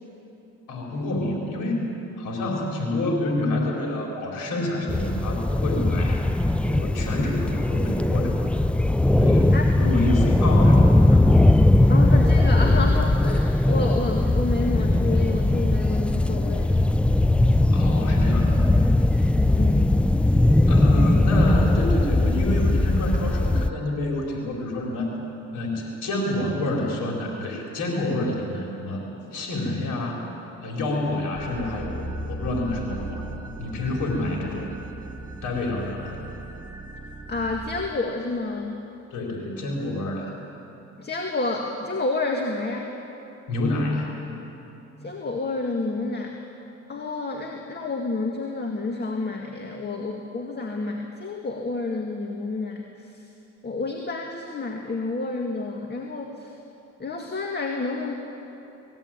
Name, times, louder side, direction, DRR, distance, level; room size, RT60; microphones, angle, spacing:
voice 1, 0.7-1.8 2.2-6.3 6.6-8.4 9.1-11.2 17.7-18.7 20.7-25.1 25.5-29.0 29.3-30.2 30.6-33.2 33.6-34.7 35.4-36.2 39.1-40.3 43.5-44.1, left 1 dB, 85° left, -1 dB, 4.3 m, -28 dB
sound 1, 4.9-23.7, left 1 dB, 5° left, 0.4 m, -19 dB
voice 2, 11.9-16.8 19.5-20.0 20.9-21.1 37.3-38.8 41.0-42.9 45.0-46.5 46.9-53.2 53.6-56.5 57.0-58.1, left 3 dB, 35° left, 1 dB, 2.0 m, -29 dB
sound 2, 31.3-37.9, right 1 dB, 15° right, 1.5 m, -37 dB
21.0 x 16.0 x 9.0 m, 3.0 s
cardioid pair, 90°, 30 cm